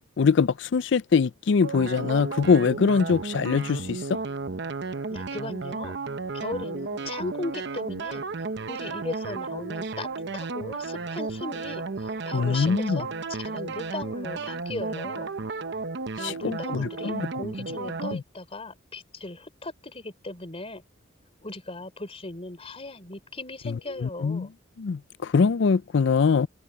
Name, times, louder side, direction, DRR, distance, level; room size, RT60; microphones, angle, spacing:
voice 1, 0.0-4.0 12.3-13.0 16.2-17.3 18.1-18.2 24.0-24.5 24.8-25.0 25.3-26.5, left 5 dB, 65° left, 0.4 m, -23 dB
sound 1, 1.6-18.2, right 3 dB, 60° right, 0.8 m, -33 dB
voice 2, 5.1-5.9 6.3-8.2 8.7-15.3 16.2-20.8 21.4-24.5, left 2 dB, 30° left, 3.7 m, -37 dB
head